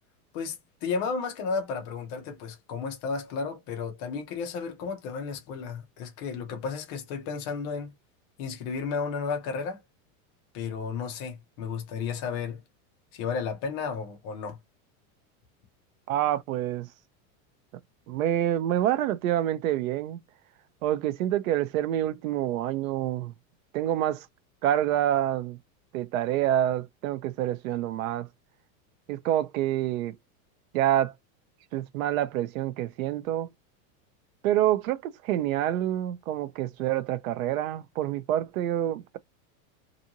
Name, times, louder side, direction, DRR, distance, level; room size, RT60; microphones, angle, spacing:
voice 1, 0.3-7.9 8.4-9.8 10.5-12.6 13.1-14.6, left 5 dB, 20° left, 0.3 m, -33 dB
voice 2, 16.1-16.9 18.1-20.2 20.8-23.3 23.7-24.3 24.6-25.6 25.9-28.3 29.1-30.2 30.7-31.1 31.7-33.5 34.4-39.2, right 12 dB, 70° right, 0.7 m, -27 dB
2.7 x 2.5 x 2.8 m
supercardioid pair, 175°, 42 cm